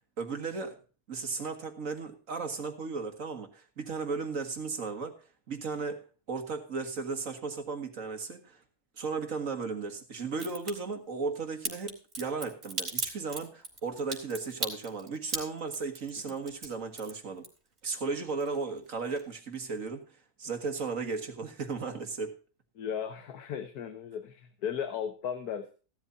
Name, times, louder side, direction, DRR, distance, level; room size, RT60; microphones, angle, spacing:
voice 1, 0.2-0.8 1.1-5.2 5.5-8.6 9.0-17.4 17.8-22.3, right 4 dB, 60° right, 6 dB, 2.1 m, -35 dB
Crack, 10.3-10.7 11.6-17.9 18.2-18.9 19.2-19.3, right 2 dB, 45° right, 3.0 m, -37 dB
voice 2, 22.8-25.7, left 8 dB, 85° left, 9 dB, 1.6 m, -36 dB
16.0 x 12.5 x 2.7 m, 0.36 s
omnidirectional pair, 1.6 m